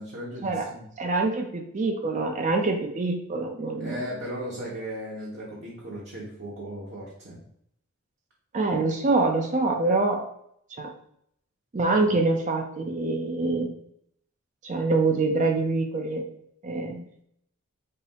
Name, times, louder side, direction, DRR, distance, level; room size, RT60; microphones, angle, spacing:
voice 1, 0.0-0.8 3.8-7.4 12.0-12.1, equal, 50° right, -6 dB, 1.0 m, -36 dB
voice 2, 1.0-4.0 8.5-10.2 10.7-10.9 11.7-13.7 14.6-16.2 16.6-17.1, right 3 dB, 35° right, 3 dB, 0.4 m, -25 dB
5.5 x 2.0 x 4.1 m, 0.72 s
head